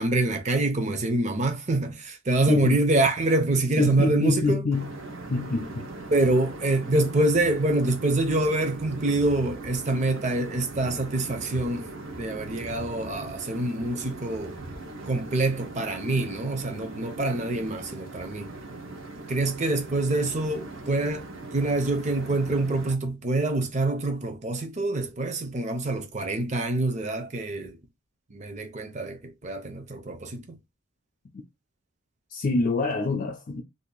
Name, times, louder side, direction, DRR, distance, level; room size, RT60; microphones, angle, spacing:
voice 1, 0.0-4.7 6.1-11.9 12.2-14.6 15.1-18.5 19.3-27.8 28.3-30.6, right 2 dB, 35° right, 0.6 m, -26 dB
voice 2, 2.5-2.8 3.8-4.9 5.3-5.9 31.3-31.4 32.3-33.6, left 3 dB, 40° left, 0.4 m, -25 dB
sound 1, 4.7-23.0, right 2 dB, 75° right, 0.8 m, -40 dB
2.6 x 2.4 x 3.8 m
head